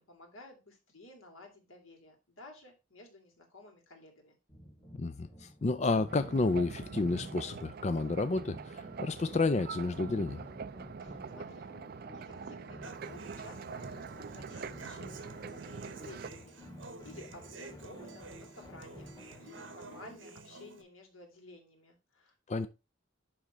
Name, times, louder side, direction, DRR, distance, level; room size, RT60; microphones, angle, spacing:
voice 1, 0.0-4.4 11.0-22.3, left 2 dB, 90° left, 2.9 m, -54 dB
sound 1, 4.5-20.2, equal, 20° left, 2.3 m, -53 dB
voice 2, 4.9-10.4 22.5-22.7, left 3 dB, 35° left, 0.4 m, -31 dB
sound 2, 6.1-16.3, right 5 dB, 50° right, 0.4 m, -44 dB
Human voice / Acoustic guitar, 12.8-20.8, right 3 dB, 65° right, 1.2 m, -50 dB
11.0 x 3.7 x 4.3 m
head